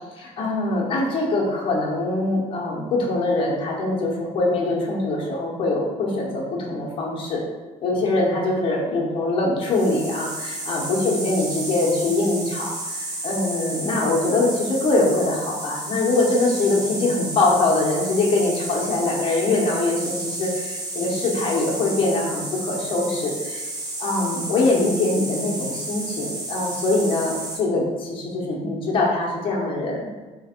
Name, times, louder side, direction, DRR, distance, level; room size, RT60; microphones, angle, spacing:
voice 1, 0.2-7.4 7.8-23.7 24.0-30.2, left 2 dB, 40° left, -3 dB, 1.1 m, -23 dB
sound 1, 9.6-27.6, right 1 dB, 30° right, 0.8 m, -32 dB
3.3 x 3.2 x 4.4 m, 1.3 s
cardioid pair, 160°, 14 cm